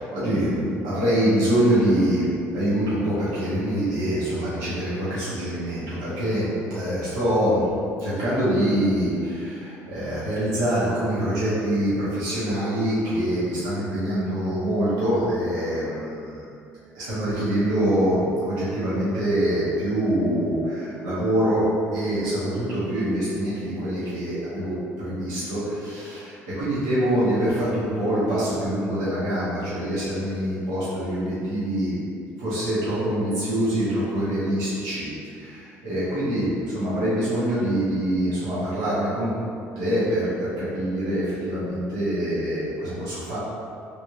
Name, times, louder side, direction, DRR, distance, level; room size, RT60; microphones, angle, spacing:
voice 1, 0.0-7.7 8.0-16.4 16.9-21.6 21.9-31.9 32.4-35.1 35.3-39.3 39.8-43.4, right 1 dB, 90° right, -12 dB, 1.3 m, -25 dB
3.2 x 2.7 x 3.0 m, 2.4 s
supercardioid pair, 90°, 6 cm